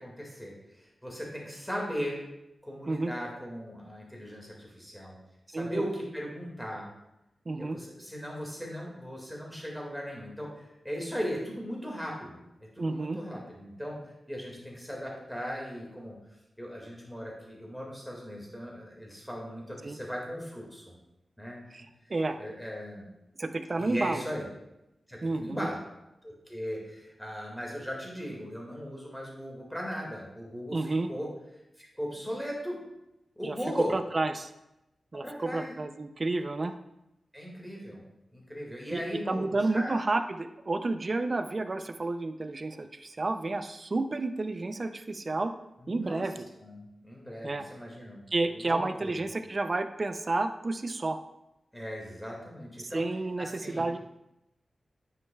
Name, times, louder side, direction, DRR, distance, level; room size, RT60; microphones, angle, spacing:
voice 1, 0.0-2.2 2.6-5.2 5.5-6.9 7.6-16.2 16.6-20.9 21.4-21.6 22.4-23.0 23.8-24.5 25.1-25.8 26.2-31.3 31.8-32.8 33.4-34.0 35.1-35.7 37.3-38.0 38.3-39.9 45.8-46.3 46.6-48.2 48.5-49.2 51.7-53.0 53.4-53.8, equal, ahead, -2 dB, 2.0 m, -38 dB
voice 2, 5.5-5.8 7.5-7.8 12.8-13.2 19.8-20.0 21.7-22.4 23.4-24.2 25.2-25.7 30.7-31.1 33.4-34.5 35.1-36.7 38.9-45.5 45.9-46.5 47.4-47.7 48.3-51.2 52.8-54.0, right 2 dB, 40° right, 9 dB, 0.5 m, -31 dB
9.5 x 5.4 x 2.3 m, 0.90 s
wide cardioid pair, 95°, 0 cm